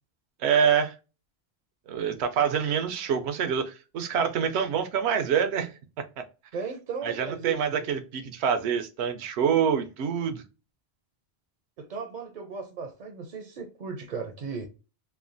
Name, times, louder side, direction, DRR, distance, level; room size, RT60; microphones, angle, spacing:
voice 1, 0.4-0.9 1.9-5.7 7.0-10.4, right 7 dB, 85° right, 0.9 m, -26 dB
voice 2, 6.5-7.9 11.8-14.7, right 5 dB, 55° right, 0.6 m, -36 dB
3.2 x 2.1 x 2.4 m
omnidirectional pair, 1.1 m